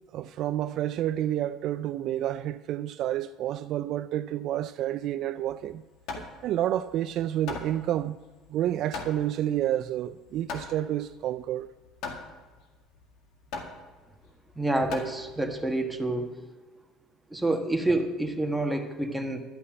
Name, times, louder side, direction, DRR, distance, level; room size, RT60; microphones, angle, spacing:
voice 1, 0.1-5.8 6.2-8.2 8.5-11.7, right 12 dB, 60° right, 0.3 m, -29 dB
Hammer, 5.5-15.7, left 4 dB, 70° left, 1.9 m, -41 dB
voice 2, 14.6-16.3 17.3-19.4, right 2 dB, 5° right, 1.4 m, -28 dB
11.5 x 5.6 x 8.8 m
supercardioid pair, 105°, 0 cm